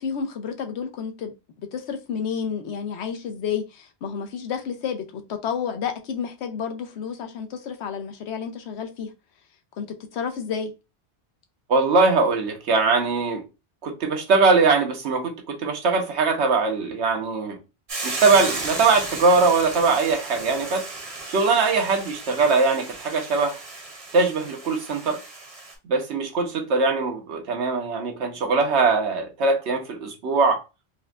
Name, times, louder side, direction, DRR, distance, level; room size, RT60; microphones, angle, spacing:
voice 1, 0.0-1.3 1.7-9.1 9.8-9.9 10.1-10.7, left 7 dB, 85° left, 0.9 m, -30 dB
voice 2, 11.7-13.4 13.8-17.6 18.0-20.8 21.3-23.6 24.1-25.2 25.8-30.6, right 4 dB, 85° right, 1.1 m, -21 dB
Hiss / Boiling, 17.9-25.7, right 3 dB, 40° right, 0.7 m, -34 dB
4.2 x 2.1 x 2.4 m
omnidirectional pair, 1.1 m